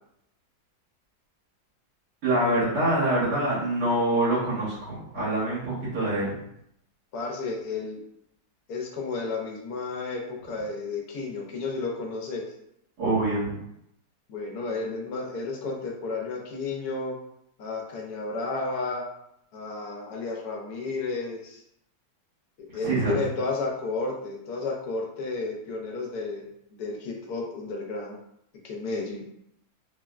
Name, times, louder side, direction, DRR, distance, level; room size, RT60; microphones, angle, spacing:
voice 1, 2.2-6.4 13.0-13.6 22.8-23.2, right 1 dB, 80° right, -8 dB, 1.8 m, -25 dB
voice 2, 7.1-8.0 8.7-12.5 14.3-17.2 17.6-19.0 19.5-21.6 22.7-26.4 26.8-28.2 28.6-29.2, left 3 dB, 75° left, 0 dB, 1.2 m, -32 dB
3.6 x 2.0 x 2.3 m, 0.77 s
omnidirectional pair, 1.7 m